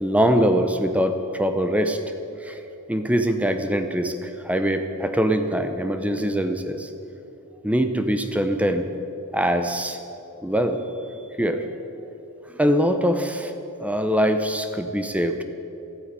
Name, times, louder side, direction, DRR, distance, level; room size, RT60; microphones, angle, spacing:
voice 1, 0.0-2.0 2.4-2.6 2.9-6.9 7.6-8.9 9.3-10.0 10.4-10.8 11.4-11.6 12.6-13.5 13.8-15.4, equal, 5° right, 7 dB, 0.7 m, -23 dB
13.0 x 8.7 x 9.7 m, 2.9 s
head